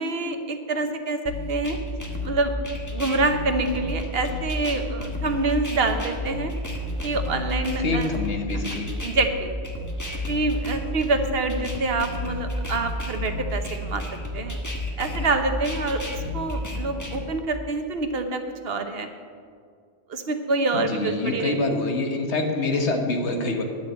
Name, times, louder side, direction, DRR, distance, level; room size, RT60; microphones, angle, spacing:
voice 1, 0.0-1.8 2.2-2.5 2.9-6.5 7.0-8.1 8.5-8.6 9.0-9.5 10.3-14.0 14.3-14.6 15.0-16.0 16.3-19.1 20.1-21.6, right 3 dB, 65° right, 7 dB, 1.1 m, -26 dB
sound 1, 1.3-17.3, left 1 dB, 15° left, 1.1 m, -31 dB
voice 2, 7.8-8.9 20.7-23.6, left 2 dB, 80° left, 3 dB, 1.6 m, -26 dB
10.5 x 6.4 x 8.4 m, 2.1 s
omnidirectional pair, 1.1 m